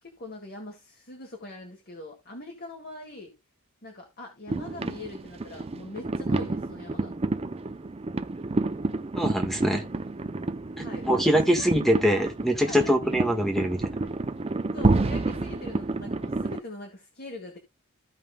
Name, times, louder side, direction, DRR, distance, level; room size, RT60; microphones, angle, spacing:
voice 1, 0.0-3.4 3.8-7.1 10.8-11.7 12.0-12.2 12.7-13.1 14.7-17.6, left 2 dB, 45° left, 1.9 m, -42 dB
sound 1, 4.5-16.6, right 2 dB, 25° right, 0.5 m, -29 dB
voice 2, 9.1-9.9 10.8-13.9, equal, ahead, 1.4 m, -24 dB
15.5 x 5.3 x 2.2 m
head